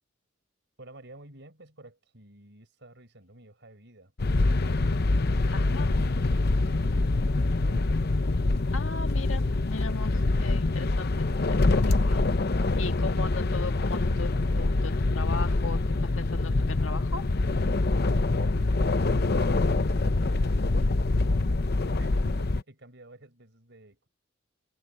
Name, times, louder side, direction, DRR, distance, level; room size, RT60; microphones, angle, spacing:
voice 1, 0.8-4.1 5.2-7.9 18.1-24.1, right 1 dB, 60° right, 5.7 m, -52 dB
sound 1, 4.2-22.6, left 2 dB, 55° left, 0.8 m, -25 dB
voice 2, 5.5-5.9 8.7-12.3 12.8-17.2, left 4 dB, 85° left, 1.8 m, -38 dB
head